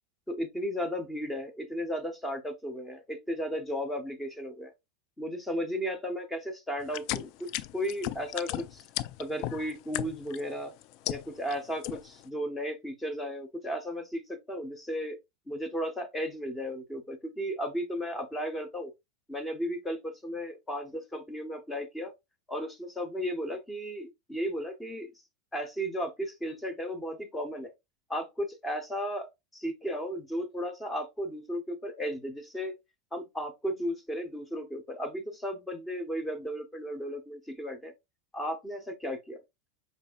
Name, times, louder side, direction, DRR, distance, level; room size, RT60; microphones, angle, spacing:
voice 1, 0.3-4.7 5.2-8.8 9.2-10.7 11.1-15.2 15.5-18.9 19.3-22.1 22.5-25.1 25.5-27.7 28.1-29.3 29.5-32.7 33.1-37.9 38.3-39.4, equal, 10° left, 1.0 m, -35 dB
sound 1, 6.9-10.4 10.8-11.5 11.8-12.2, left 15 dB, 50° left, 0.3 m, -35 dB
5.4 x 3.9 x 2.5 m
figure-of-eight pair, 85°, 0 cm